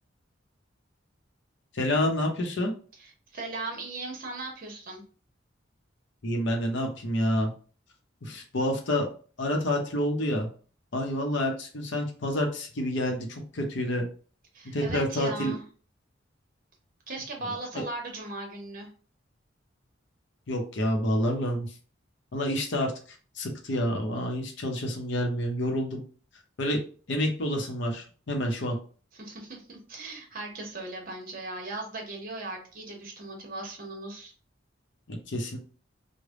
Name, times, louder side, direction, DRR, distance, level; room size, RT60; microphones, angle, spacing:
voice 1, 1.7-2.7 6.2-7.5 8.2-9.1 9.4-10.5 10.9-14.1 14.7-15.5 17.7-17.8 20.5-21.8 22.3-26.0 26.6-26.8 27.1-28.8 35.1-35.6, left 1 dB, 65° left, 2 dB, 0.7 m, -28 dB
voice 2, 3.0-5.0 14.5-15.6 17.1-18.9 29.1-34.3, right 2 dB, 50° right, 1 dB, 1.0 m, -38 dB
3.3 x 2.1 x 3.7 m, 0.40 s
head